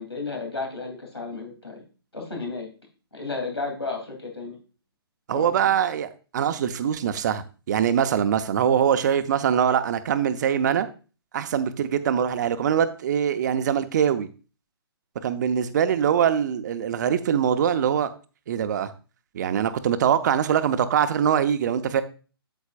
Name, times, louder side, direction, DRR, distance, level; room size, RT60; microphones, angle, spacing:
voice 1, 0.0-1.8 2.1-2.7 3.1-4.6 5.3-5.7, left 3 dB, 90° left, 1 dB, 3.1 m, -33 dB
voice 2, 5.3-10.9 11.3-14.3 15.2-18.1 18.5-18.9 19.3-22.0, right 8 dB, 45° right, 10 dB, 0.8 m, -23 dB
8.4 x 7.9 x 2.5 m, 0.35 s
figure-of-eight pair, 135°, 13 cm